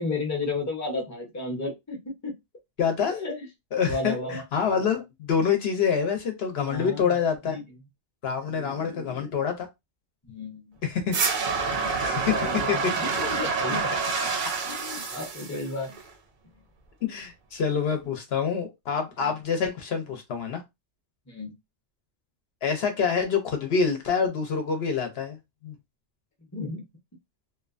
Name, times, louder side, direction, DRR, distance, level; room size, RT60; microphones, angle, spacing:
voice 1, 0.0-2.4 2.8-3.5 3.8-4.4 6.6-7.2 7.5-7.6 8.4-9.3 10.2-10.6 12.0-14.3 14.6-15.9 19.2-19.3 21.3-21.5 26.5-26.8, left 3 dB, 20° left, 0.6 m, -33 dB
voice 2, 2.8-3.2 3.7-7.6 8.2-9.7 10.8-11.2 11.8-12.4 12.7-12.9 17.0-20.6 22.6-25.7, left 6 dB, 65° left, 0.8 m, -26 dB
sound 1, 11.1-16.1, right 5 dB, 55° right, 0.6 m, -28 dB
2.6 x 2.2 x 2.4 m
omnidirectional pair, 1.2 m